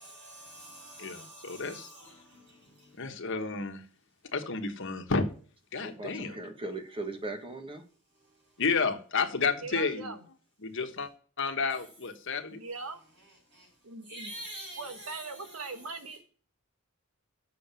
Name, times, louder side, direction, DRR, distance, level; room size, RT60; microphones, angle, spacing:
voice 1, 0.0-2.1 14.1-15.3, right 1 dB, 55° right, 6.2 m, -45 dB
voice 2, 1.0-1.9 3.0-3.8 4.3-5.3 5.7-6.3 8.6-10.1 10.6-11.1 11.4-12.6, left 4 dB, 60° left, 1.3 m, -31 dB
voice 3, 5.8-7.8, right 2 dB, 25° right, 1.3 m, -38 dB
voice 4, 9.6-10.2 12.5-13.0 13.8-14.3 14.8-16.2, right 3 dB, 85° right, 1.4 m, -40 dB
7.5 x 6.4 x 6.8 m
head